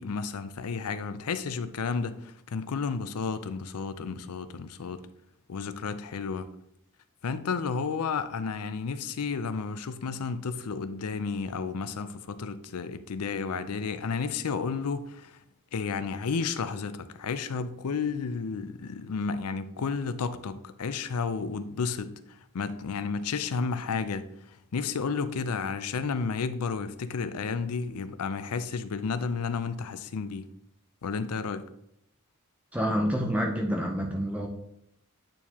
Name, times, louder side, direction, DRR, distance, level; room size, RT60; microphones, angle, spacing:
voice 1, 0.0-5.1 5.5-6.5 7.2-15.4 15.7-30.5 31.0-31.7, left 5 dB, 80° left, 0.5 m, -32 dB
voice 2, 32.7-34.5, equal, 5° right, 0.6 m, -28 dB
8.8 x 4.6 x 2.9 m
head